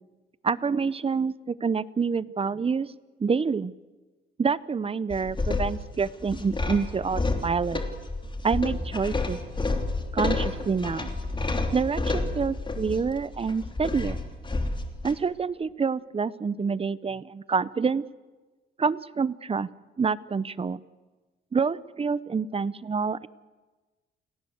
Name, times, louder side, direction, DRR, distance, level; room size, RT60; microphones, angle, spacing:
voice 1, 0.4-2.9 3.2-3.7 4.4-7.8 8.4-9.4 10.1-11.1 11.7-14.2 15.0-18.0 18.8-19.7 20.0-20.8 21.5-23.3, right 5 dB, 30° right, 18 dB, 0.8 m, -27 dB
sound 1, 5.1-15.1, left 3 dB, 25° left, 3.2 m, -30 dB
29.0 x 18.5 x 8.0 m, 1.3 s
cardioid pair, 90°, 20 cm